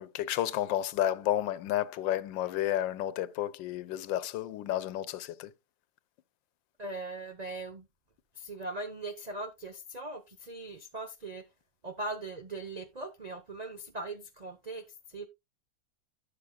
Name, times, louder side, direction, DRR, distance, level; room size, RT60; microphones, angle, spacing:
voice 1, 0.0-5.5, left 12 dB, 85° left, 1.4 m, -31 dB
voice 2, 6.8-7.9 8.3-11.5 11.8-15.3, right 2 dB, 80° right, 0.3 m, -40 dB
12.0 x 7.5 x 2.2 m
omnidirectional pair, 2.0 m